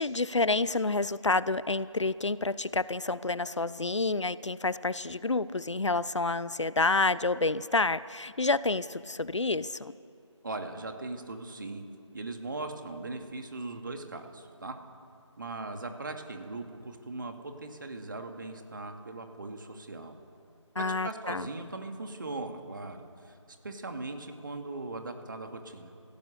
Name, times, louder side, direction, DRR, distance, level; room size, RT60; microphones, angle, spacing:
voice 1, 0.0-9.9 20.8-21.5, left 3 dB, 70° left, 17 dB, 0.8 m, -29 dB
voice 2, 10.4-11.8 12.1-14.8 15.4-20.2 20.8-23.4 23.6-25.9, right 2 dB, 40° right, 5 dB, 2.2 m, -39 dB
29.5 x 17.0 x 6.6 m, 2.4 s
figure-of-eight pair, 165°, 16 cm